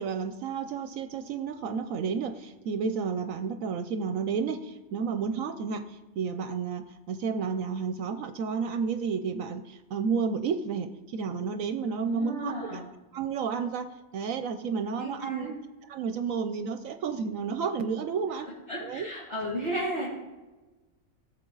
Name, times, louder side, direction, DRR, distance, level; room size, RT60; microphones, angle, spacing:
voice 1, 0.0-12.8 13.1-13.9 14.1-15.5 15.9-18.5 18.9-19.1, right 6 dB, 75° right, 9 dB, 1.0 m, -31 dB
voice 2, 12.1-12.9 15.0-15.5 18.7-20.1, equal, 50° left, -8 dB, 2.7 m, -33 dB
17.5 x 7.1 x 3.9 m, 1.1 s
omnidirectional pair, 1.5 m